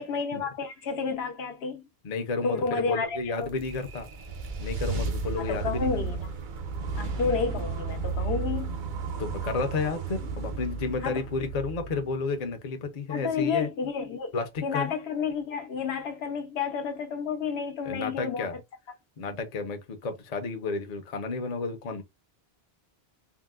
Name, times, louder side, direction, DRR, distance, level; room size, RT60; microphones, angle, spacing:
voice 1, 0.0-1.9 2.4-3.5 5.4-6.2 6.9-8.8 11.0-11.2 13.1-14.3 14.6-18.6, left 5 dB, 80° left, 1.0 m, -31 dB
voice 2, 2.0-4.1 4.6-5.9 9.2-13.7 14.3-14.9 17.9-18.6 19.2-22.0, left 4 dB, 45° left, 0.6 m, -31 dB
sound 1, 3.2-12.5, right 4 dB, 55° right, 0.7 m, -33 dB
3.7 x 2.0 x 2.3 m
omnidirectional pair, 1.1 m